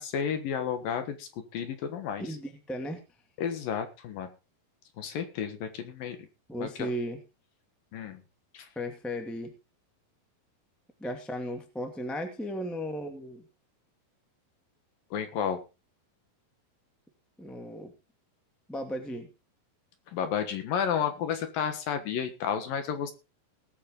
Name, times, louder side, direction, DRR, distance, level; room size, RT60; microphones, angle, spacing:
voice 1, 0.0-2.2 3.4-4.3 5.0-6.2 6.6-6.9 7.9-8.2 8.5-8.7 15.1-15.6 20.1-23.1, left 8 dB, 65° left, 8 dB, 2.9 m, -32 dB
voice 2, 2.2-3.0 6.5-7.2 8.7-9.5 11.0-13.5 17.4-17.9 18.7-19.3, equal, ahead, 4 dB, 0.8 m, -35 dB
19.5 x 8.5 x 3.9 m, 0.30 s
omnidirectional pair, 4.9 m